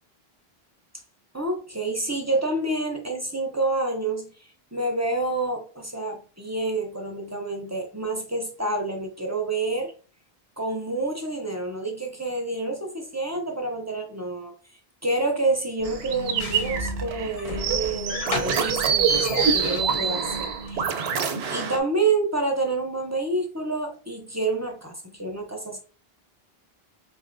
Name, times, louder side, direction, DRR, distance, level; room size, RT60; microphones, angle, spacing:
voice 1, 1.3-9.9 10.6-14.5 15.0-21.1 21.5-25.8, right 2 dB, 25° right, 2 dB, 0.4 m, -28 dB
sound 1, 15.8-20.9, left 3 dB, 50° left, 0.4 m, -35 dB
sound 2, 15.8-21.8, right 6 dB, 90° right, 0.9 m, -26 dB
3.8 x 3.1 x 2.5 m, 0.39 s
omnidirectional pair, 1.0 m